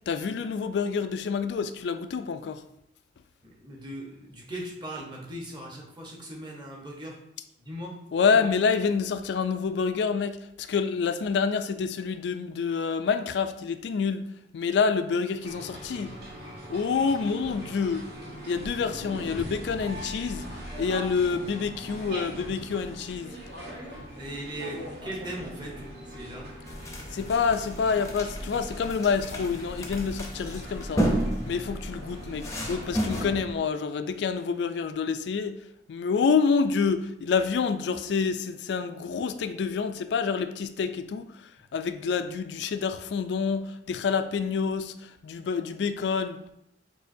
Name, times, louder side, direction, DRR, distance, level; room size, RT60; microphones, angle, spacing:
voice 1, 0.1-2.6 8.1-14.2 14.5-16.1 16.7-18.0 18.5-20.5 20.8-23.4 27.1-31.1 31.5-35.6 35.9-41.4 41.7-46.4, left 5 dB, 70° left, 0.3 m, -27 dB
voice 2, 3.4-7.2 7.6-8.0 24.1-26.5, right 1 dB, 25° right, 0.9 m, -39 dB
sound 1, 15.4-33.6, equal, 65° right, 1.6 m, -41 dB
sound 2, 26.7-33.3, equal, 15° left, 0.6 m, -32 dB
6.6 x 2.8 x 2.6 m
head